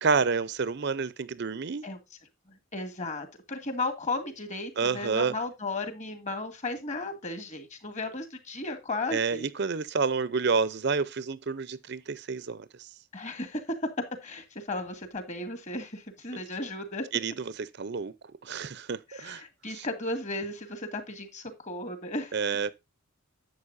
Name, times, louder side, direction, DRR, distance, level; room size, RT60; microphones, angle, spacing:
voice 1, 0.0-1.8 4.8-5.3 9.1-12.6 17.1-18.1 18.4-19.4 19.7-19.9 22.3-22.7, right 5 dB, 50° right, 0.6 m, -29 dB
voice 2, 2.7-9.5 13.1-13.9 14.2-17.1 19.1-22.4, left 2 dB, 35° left, 2.1 m, -35 dB
11.0 x 8.0 x 2.6 m
head